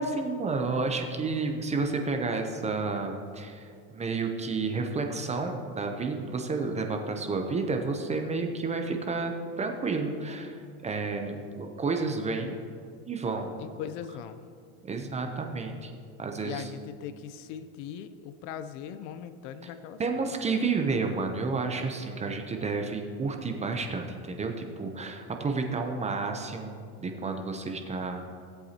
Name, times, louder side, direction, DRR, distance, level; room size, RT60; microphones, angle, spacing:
voice 1, 0.0-12.6 13.0-13.5 14.8-15.9 16.2-16.7 20.0-28.3, right 4 dB, 15° right, 4 dB, 0.6 m, -31 dB
voice 2, 13.6-14.4 16.4-20.3, left 8 dB, 55° left, 11 dB, 0.7 m, -40 dB
17.0 x 8.1 x 2.9 m, 2.3 s
supercardioid pair, 130°, 42 cm